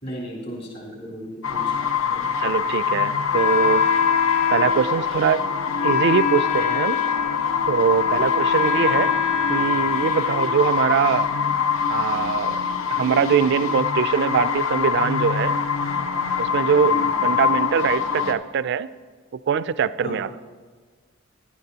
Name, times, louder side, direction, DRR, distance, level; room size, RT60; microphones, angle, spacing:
voice 1, 0.0-1.8 2.1-2.3 6.3-6.5 16.9-17.1 20.0-20.2, equal, 55° left, -5 dB, 3.6 m, -36 dB
sound 1, 1.4-18.3, left 6 dB, 85° left, 0.8 m, -24 dB
voice 2, 2.4-3.9 4.5-5.4 5.8-7.0 7.7-9.1 9.5-11.3 11.9-12.6 12.9-15.5 16.4-18.9 19.5-20.4, right 7 dB, 60° right, 16 dB, 0.3 m, -22 dB
Wind instrument woodwind instrument, 3.3-11.1, left 7 dB, 35° left, 0.8 m, -24 dB
16.0 x 12.0 x 2.8 m, 1.5 s
head